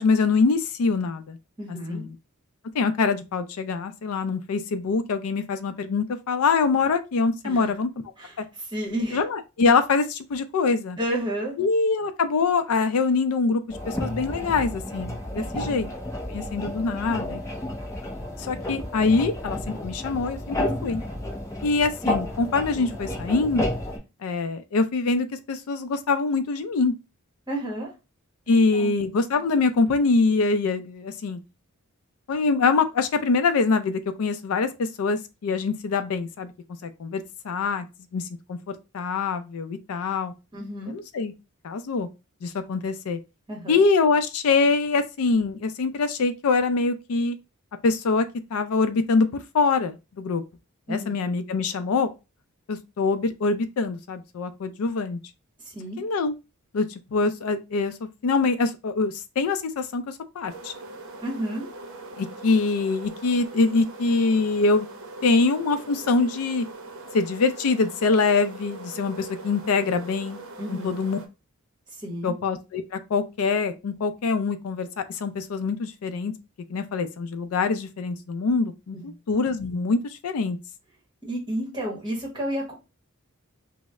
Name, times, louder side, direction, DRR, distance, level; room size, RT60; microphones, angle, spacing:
voice 1, 0.0-1.4 1.9-2.1 2.7-7.9 8.4-8.5 9.1-11.0 11.6-15.9 16.3-17.4 18.4-21.0 21.6-23.7 24.2-26.9 28.5-31.4 32.3-36.5 36.8-37.8 38.1-38.2 38.5-38.6 38.9-40.3 40.9-41.3 41.6-42.1 42.4-43.2 43.7-47.4 47.8-48.3 48.5-49.3 49.5-50.4 50.9-52.1 52.7-55.2 56.0-56.4 56.7-60.0 60.4-60.7 62.2-64.9 65.2-66.7 67.1-70.4 70.7-71.2 72.2-76.3 76.7-80.6, left 4 dB, 70° left, 0.4 m, -24 dB
voice 2, 1.6-2.0 7.4-7.7 8.2-9.2 11.0-11.6 15.3-15.8 27.5-27.9 28.7-28.9 40.5-41.0 43.5-43.8 50.9-51.1 55.6-56.0 61.2-61.7 70.6-71.0 72.0-72.3 78.9-79.2 81.2-82.7, equal, 20° right, 1.1 m, -31 dB
sound 1, 13.7-24.0, left 1 dB, 15° left, 0.6 m, -31 dB
sound 2, 60.5-71.3, right 2 dB, 65° right, 0.6 m, -41 dB
3.1 x 2.0 x 3.5 m
head